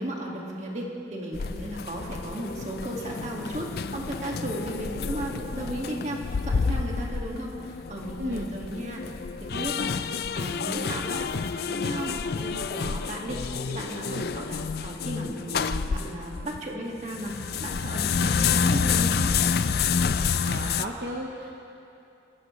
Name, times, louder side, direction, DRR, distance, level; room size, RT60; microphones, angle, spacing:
voice 1, 0.0-9.0 9.4-13.4 13.7-19.3, right 1 dB, 40° right, -1 dB, 2.0 m, -35 dB
sound 1, 1.3-16.6 17.0-20.9, left 5 dB, 55° left, 0.4 m, -29 dB
voice 2, 8.2-8.5 13.2-13.4 14.0-14.3 20.4-21.5, equal, 60° right, -1 dB, 1.0 m, -34 dB
23.5 x 15.5 x 3.2 m, 2.7 s
head